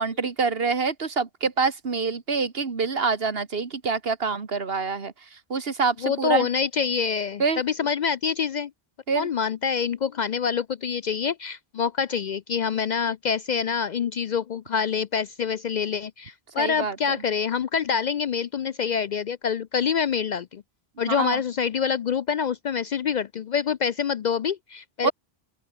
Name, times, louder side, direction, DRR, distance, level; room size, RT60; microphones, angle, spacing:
voice 1, 0.0-6.5 7.4-7.6 9.1-9.3 16.6-17.2 21.0-21.4 25.0-25.1, right 4 dB, 70° right, 1.9 m, -26 dB
voice 2, 6.0-8.7 9.2-20.6 21.0-25.1, left 7 dB, 55° left, 0.5 m, -26 dB
open air
omnidirectional pair, 1.1 m